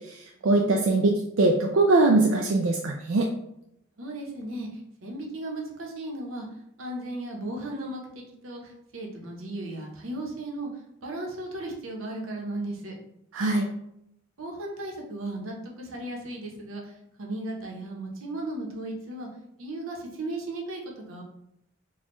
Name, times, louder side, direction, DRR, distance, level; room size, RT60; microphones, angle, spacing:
voice 1, 0.4-3.3 13.3-13.6, right 2 dB, 70° right, 0 dB, 0.4 m, -22 dB
voice 2, 4.0-6.5 6.8-10.7 11.0-12.9 14.4-16.9 17.2-19.3 19.6-21.2, right 1 dB, 85° right, 0 dB, 0.9 m, -36 dB
4.2 x 2.3 x 3.0 m, 0.80 s
head